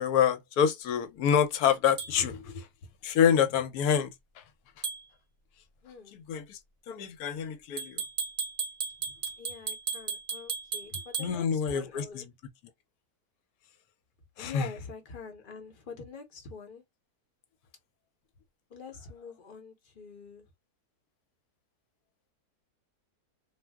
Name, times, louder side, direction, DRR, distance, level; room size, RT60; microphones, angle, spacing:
voice 1, 0.0-2.7 3.0-4.1 6.3-6.6 6.9-8.0 11.2-12.3 14.4-14.7, left 8 dB, 75° left, 1.1 m, -27 dB
sound 1, 2.0-2.1 4.8-5.0 7.8-11.3, right 5 dB, 45° right, 0.5 m, -35 dB
voice 2, 5.8-6.2 9.4-12.3 14.4-16.8 18.7-20.5, left 5 dB, 45° left, 0.8 m, -45 dB
2.6 x 2.0 x 3.3 m
omnidirectional pair, 1.6 m